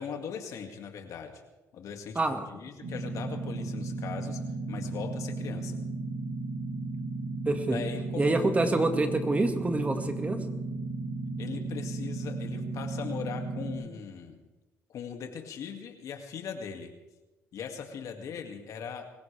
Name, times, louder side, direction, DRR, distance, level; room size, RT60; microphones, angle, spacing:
voice 1, 0.0-1.4 1.7-4.4 4.7-5.8 7.7-8.3 11.4-14.4 14.9-16.9 17.5-19.0, left 7 dB, 65° left, 4 dB, 2.4 m, -39 dB
sound 1, 2.8-13.7, right 3 dB, 85° right, 6.0 m, -35 dB
voice 2, 7.5-7.8 8.2-10.4, right 2 dB, 25° right, 6 dB, 2.0 m, -27 dB
25.5 x 15.5 x 3.5 m, 1.1 s
supercardioid pair, 75°, 6 cm